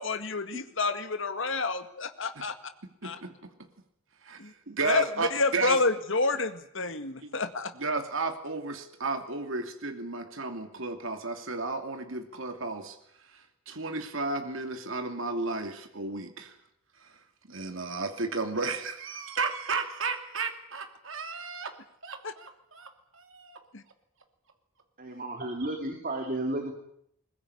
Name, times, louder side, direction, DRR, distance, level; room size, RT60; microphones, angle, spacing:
voice 1, 0.0-2.5 3.0-3.2 4.4-4.5 4.8-5.1 5.3-7.7 22.2-22.3 23.7-23.8, left 3 dB, 65° left, 9 dB, 2.0 m, -29 dB
voice 2, 3.0-3.3 4.2-5.8 7.3-7.4 7.8-13.0 13.3-16.5 17.5-21.7 22.0-23.6, right 3 dB, 70° right, 6 dB, 2.7 m, -33 dB
voice 3, 25.0-26.7, right 1 dB, 45° right, 4 dB, 3.4 m, -33 dB
22.0 x 21.0 x 10.0 m, 0.72 s
head